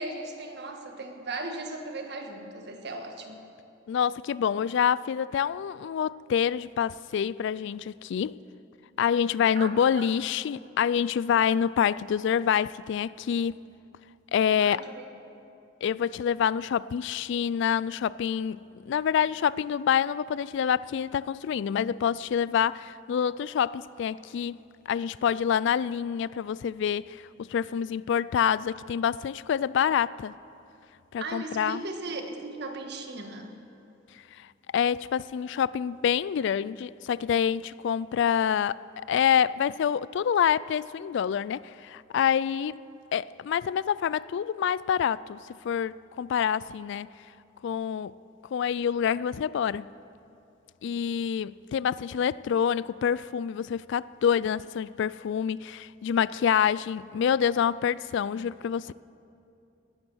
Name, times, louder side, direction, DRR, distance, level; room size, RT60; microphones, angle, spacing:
voice 1, 0.0-3.4 9.6-10.0 14.6-15.0 31.2-33.5, right 2 dB, 60° right, 1.5 m, -37 dB
voice 2, 3.9-8.4 9.0-13.6 14.3-14.9 15.8-18.6 18.9-24.6 24.9-30.3 31.1-31.8 34.4-34.5 34.7-42.8 43.1-45.4 45.6-47.1 47.6-48.1 48.5-49.9 50.8-58.9, left 8 dB, 65° left, 0.3 m, -27 dB
18.0 x 11.5 x 6.3 m
head